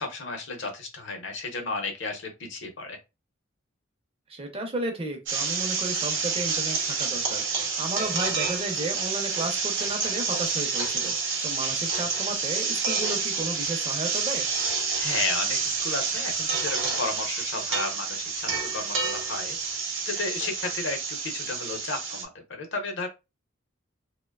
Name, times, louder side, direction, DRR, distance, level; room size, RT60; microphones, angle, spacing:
voice 1, 0.0-3.0 15.0-19.6 20.1-23.1, left 3 dB, 65° left, 4 dB, 0.7 m, -33 dB
voice 2, 4.3-14.5, right 2 dB, 25° right, 3 dB, 0.6 m, -33 dB
sound 1, 5.3-22.2, right 5 dB, 60° right, 0.7 m, -28 dB
2.8 x 2.1 x 2.2 m, 0.26 s
head